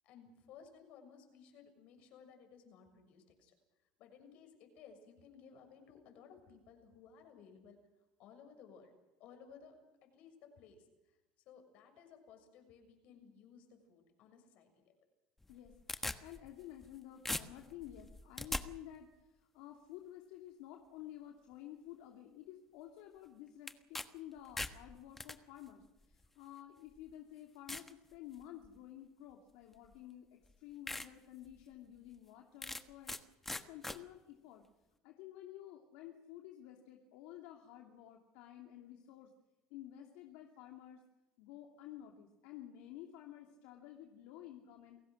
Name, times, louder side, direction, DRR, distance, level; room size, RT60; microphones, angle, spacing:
voice 1, 0.0-3.5 4.0-7.8 8.2-8.9 9.2-11.2 11.4-14.9, left 6 dB, 60° left, 6 dB, 6.7 m, -59 dB
sound 1, 15.4-17.0 17.3-18.6 23.7-24.1 24.4-25.4 26.2-26.3 27.0-27.1 27.7-27.9 28.4-28.8 29.9-30.0 30.4-30.5 30.9-31.1 31.5-31.6 32.6-33.2 33.5-34.0, left 2 dB, 10° left, 1.3 m, -41 dB
voice 2, 15.5-33.2 33.5-34.6 35.0-39.3 39.7-41.0 41.4-45.0, left 12 dB, 80° left, 2 dB, 2.7 m, -52 dB
29.5 x 17.5 x 6.4 m, 1.0 s
cardioid pair, 125°, 2 cm